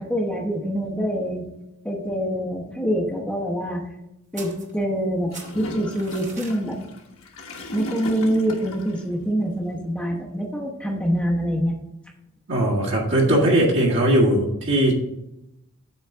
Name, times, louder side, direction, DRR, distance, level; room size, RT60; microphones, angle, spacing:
voice 1, 0.0-1.5 1.8-3.8 4.3-6.8 7.7-11.7, equal, 5° left, -3 dB, 1.0 m, -25 dB
sound 1, 4.3-5.1 5.3-6.6, right 4 dB, 35° right, 1.1 m, -41 dB
Gurgling / Toilet flush, 5.3-9.0, left 1 dB, 70° left, 1.2 m, -36 dB
voice 2, 12.5-14.9, right 1 dB, 55° right, -3 dB, 1.8 m, -19 dB
7.9 x 4.0 x 5.9 m, 0.86 s
head